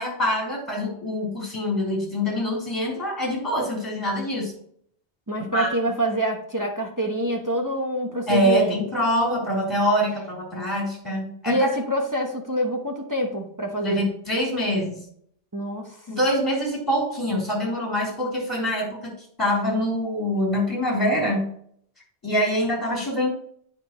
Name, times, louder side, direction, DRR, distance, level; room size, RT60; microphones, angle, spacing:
voice 1, 0.0-4.5 5.5-5.7 8.3-11.7 13.8-15.0 16.1-19.1 19.4-21.5 22.2-23.3, equal, 15° left, -4 dB, 3.4 m, -24 dB
voice 2, 5.3-8.8 11.5-14.0 15.5-16.0, right 1 dB, 20° right, 1 dB, 0.9 m, -26 dB
9.2 x 5.7 x 3.0 m, 0.64 s
omnidirectional pair, 1.1 m